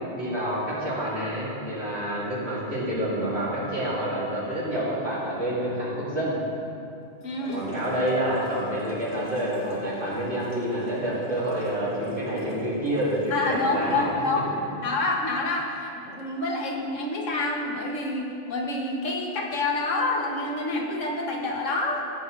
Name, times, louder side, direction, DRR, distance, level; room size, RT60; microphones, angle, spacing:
voice 1, 0.0-6.4 7.5-14.2 14.6-14.7, right 1 dB, 60° right, -8 dB, 2.7 m, -28 dB
voice 2, 7.2-7.6 13.3-14.5 14.8-22.0, left 2 dB, 85° left, 0 dB, 1.5 m, -27 dB
sound 1, 7.2-14.0, left 1 dB, 40° left, 1.7 m, -39 dB
14.0 x 8.0 x 3.2 m, 2.6 s
omnidirectional pair, 1.3 m